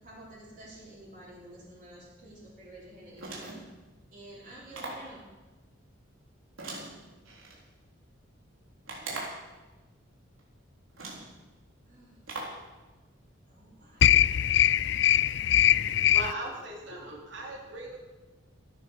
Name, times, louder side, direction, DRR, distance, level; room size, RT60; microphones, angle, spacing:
voice 1, 0.0-3.6 4.1-5.2 11.9-12.3 13.5-14.0, right 1 dB, 40° right, 4.2 m, -50 dB
sound 1, 3.2-3.7 4.7-5.1 6.6-7.6 8.9-9.5 10.4-10.5 11.0-11.3 12.3-12.6, right 2 dB, 90° right, 3.9 m, -40 dB
voice 2, 14.0-16.3, left 11 dB, 55° left, 0.3 m, -22 dB
voice 3, 16.1-18.0, right 2 dB, 60° right, 3.2 m, -38 dB
15.0 x 9.4 x 6.7 m
head